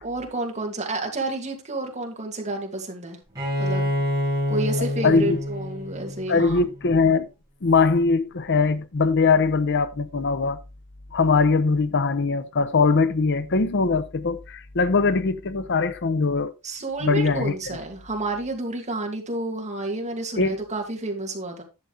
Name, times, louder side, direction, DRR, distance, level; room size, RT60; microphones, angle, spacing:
voice 1, 0.0-3.2 3.6-3.9 4.5-6.6 16.6-21.6, right 2 dB, 35° right, 2.5 m, -30 dB
Bowed string instrument, 3.4-7.0, left 1 dB, 15° right, 4.8 m, -27 dB
voice 2, 5.0-5.4 6.3-7.3 7.6-10.6 11.1-16.5 17.0-17.5 20.4-20.6, left 4 dB, 55° left, 0.7 m, -21 dB
11.0 x 6.9 x 3.4 m
head